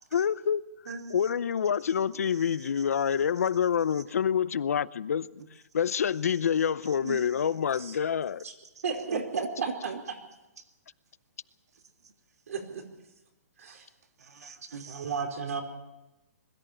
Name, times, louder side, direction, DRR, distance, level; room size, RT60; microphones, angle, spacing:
voice 1, 0.1-5.4 5.7-8.4, left 8 dB, 75° left, 17 dB, 0.7 m, -27 dB
voice 2, 2.3-3.5 3.9-4.0 5.4-5.5 6.3-6.5 6.8-7.5 7.7-7.8 8.8-10.0 10.6-10.7 11.7-12.1 14.2-15.2, right 5 dB, 85° right, 7 dB, 1.9 m, -42 dB
voice 3, 12.5-12.8 13.6-13.9 14.9-15.6, right 5 dB, 70° right, 4 dB, 4.5 m, -34 dB
22.0 x 13.5 x 8.7 m, 1.0 s
hypercardioid pair, 170°, 8 cm